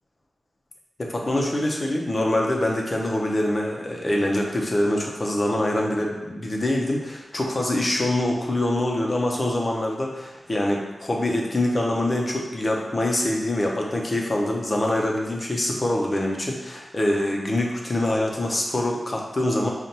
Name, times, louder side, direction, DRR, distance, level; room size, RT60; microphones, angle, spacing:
voice 1, 1.0-19.7, left 1 dB, 40° left, -1 dB, 0.7 m, -24 dB
5.2 x 2.5 x 2.9 m, 1.1 s
cardioid pair, 60°, 0 cm